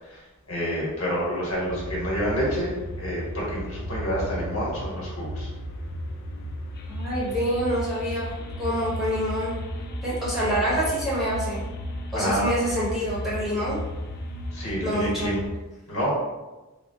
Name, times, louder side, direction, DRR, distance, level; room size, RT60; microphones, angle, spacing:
voice 1, 0.5-5.5 12.1-12.5 14.5-15.4 15.9-16.2, equal, 85° left, -5 dB, 1.1 m, -28 dB
sound 1, 1.7-15.5, equal, 45° left, 0.3 m, -34 dB
voice 2, 6.9-9.5 10.0-11.6 12.1-13.8 14.8-15.3, equal, ahead, -9 dB, 0.8 m, -26 dB
3.6 x 2.0 x 2.6 m, 1.1 s
head